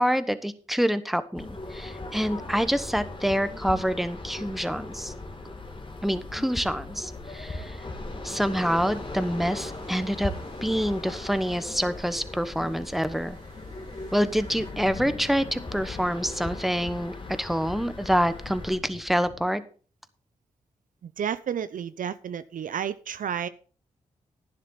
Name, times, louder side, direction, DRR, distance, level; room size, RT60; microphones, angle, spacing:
voice 1, 0.0-5.1 6.0-7.8 8.2-10.3 10.6-13.4 14.1-19.6, equal, ahead, 12 dB, 1.2 m, -27 dB
sound 1, 1.3-18.8, left 2 dB, 35° left, 2.0 m, -38 dB
sound 2, 8.4-14.7, right 2 dB, 85° right, 4.1 m, -51 dB
sound 3, 11.1-11.6 11.9-19.5, left 6 dB, 70° left, 1.1 m, -47 dB
voice 2, 21.0-23.5, right 8 dB, 65° right, 14 dB, 0.5 m, -31 dB
11.0 x 10.0 x 3.9 m, 0.40 s
supercardioid pair, 45°, 15 cm